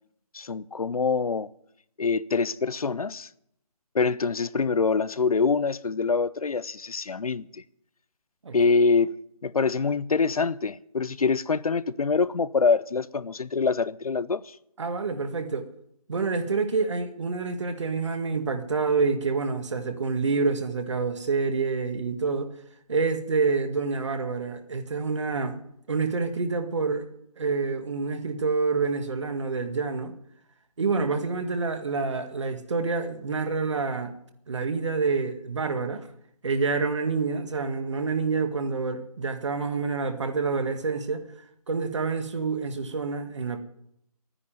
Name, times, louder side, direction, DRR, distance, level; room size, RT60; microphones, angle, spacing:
voice 1, 0.3-1.5 2.0-3.3 3.9-7.6 8.5-9.2 9.4-14.6, left 4 dB, 70° left, 0.7 m, -25 dB
voice 2, 14.8-15.7 16.1-22.5 22.9-25.6 25.9-27.1 27.4-30.1 30.8-34.2 34.5-36.1 36.4-41.2 41.7-43.6, right 4 dB, 50° right, 1.9 m, -27 dB
11.5 x 10.0 x 9.0 m
figure-of-eight pair, 160°, 19 cm